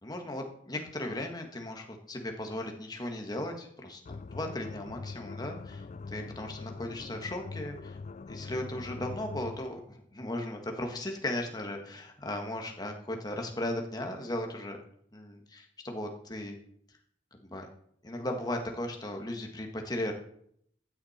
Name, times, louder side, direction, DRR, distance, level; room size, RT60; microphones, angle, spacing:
voice 1, 0.0-8.0 8.3-14.8 15.1-16.6 17.4-17.7 18.0-20.1, left 1 dB, 20° left, 3 dB, 1.7 m, -37 dB
sound 1, 4.1-9.7, left 4 dB, 40° left, 0.4 m, -43 dB
14.5 x 10.5 x 4.4 m, 0.69 s
head